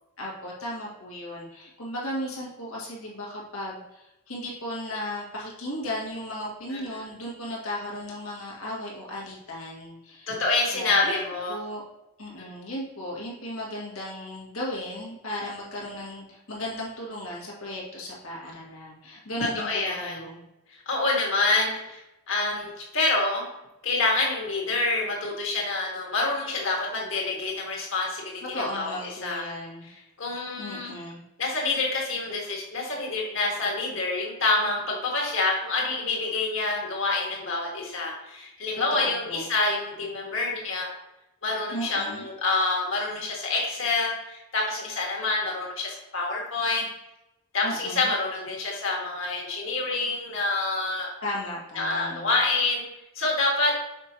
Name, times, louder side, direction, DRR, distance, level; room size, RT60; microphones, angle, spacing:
voice 1, 0.2-10.4 10.7-11.2 11.5-11.8 12.2-19.7 20.0-20.4 28.4-29.9 30.6-31.2 38.9-39.5 41.7-42.3 47.6-48.1 51.2-52.3, left 1 dB, 80° left, -3 dB, 1.9 m, -35 dB
voice 2, 6.7-7.0 10.3-11.6 19.6-20.3 20.9-22.0 22.3-22.7 22.9-23.4 23.8-28.4 28.7-28.9 29.2-29.4 30.2-31.0 31.4-40.9 41.4-46.9 47.5-51.1 51.8-52.8 53.2-53.7, left 3 dB, 60° left, -2 dB, 1.8 m, -27 dB
6.4 x 5.2 x 3.0 m, 0.93 s
head